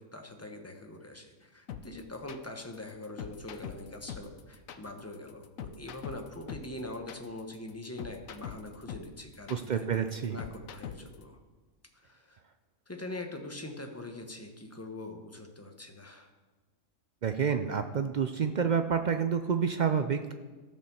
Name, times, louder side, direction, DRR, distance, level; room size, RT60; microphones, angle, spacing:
voice 1, 0.0-9.9 10.3-11.4 11.9-12.4 12.9-16.3, left 2 dB, 15° left, 4 dB, 0.9 m, -43 dB
sound 1, 1.7-11.2, left 8 dB, 80° left, 1.1 m, -43 dB
voice 2, 9.5-10.4 17.2-20.3, right 7 dB, 70° right, 8 dB, 0.4 m, -29 dB
14.5 x 5.3 x 6.9 m, 1.3 s
omnidirectional pair, 1.4 m